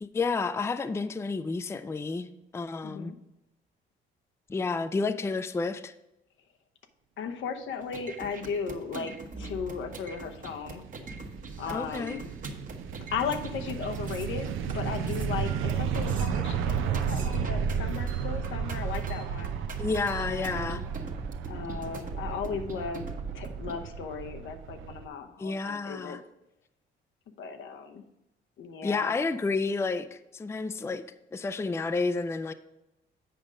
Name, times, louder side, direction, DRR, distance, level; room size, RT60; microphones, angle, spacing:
voice 1, 0.0-3.1 4.5-5.9 11.7-12.2 19.8-20.8 25.4-26.2 28.8-31.0 31.3-32.5, left 4 dB, 15° left, 12 dB, 0.4 m, -30 dB
voice 2, 2.8-3.2 7.2-10.8 11.6-12.3 13.1-19.5 20.2-20.8 21.5-23.1 23.3-26.2 27.4-28.0 28.6-29.1, left 6 dB, 75° left, 6 dB, 0.9 m, -36 dB
sound 1, 7.8-23.7, right 3 dB, 40° right, 1.1 m, -42 dB
sound 2, 9.5-25.1, right 7 dB, 85° right, 0.6 m, -33 dB
7.9 x 5.2 x 5.0 m, 0.94 s
cardioid pair, 90°, 20 cm